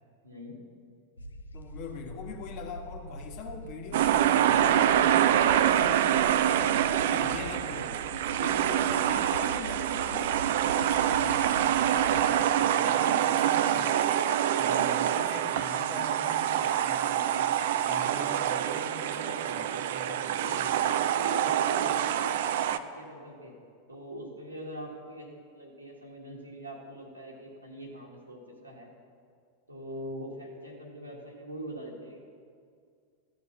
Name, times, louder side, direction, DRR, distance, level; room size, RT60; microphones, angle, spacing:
voice 1, 0.2-0.6 14.6-15.1 20.3-20.7 21.1-23.5 23.9-28.9 29.7-32.2, equal, 90° right, -2 dB, 1.7 m, -42 dB
sound 1, 1.2-12.3, equal, 80° left, 0.5 m, -44 dB
voice 2, 1.5-8.0 8.4-14.1 14.6-20.9, left 4 dB, 45° left, 3 dB, 1.4 m, -43 dB
sound 2, 3.9-22.8, right 10 dB, 60° right, 0.4 m, -26 dB
14.0 x 6.9 x 5.8 m, 2.2 s
figure-of-eight pair, 85°, 0 cm